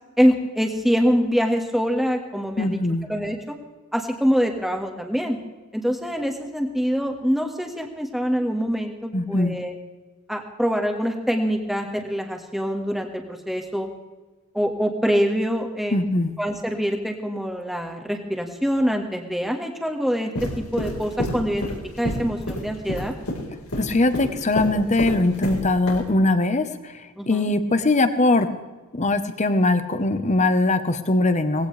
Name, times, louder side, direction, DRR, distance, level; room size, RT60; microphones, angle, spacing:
voice 1, 0.2-2.8 3.1-3.6 3.9-5.4 5.7-9.7 10.3-13.9 14.5-16.1 16.4-21.7 22.0-23.1 27.2-27.5, equal, ahead, 2 dB, 1.7 m, -24 dB
voice 2, 2.6-3.1 9.1-9.5 15.9-16.3 23.8-28.5 28.9-31.7, left 2 dB, 30° left, 10 dB, 1.0 m, -21 dB
sound 1, 20.4-25.6 25.9-26.0, left 1 dB, 85° left, 4.4 m, -28 dB
19.0 x 16.5 x 3.4 m, 1.2 s
head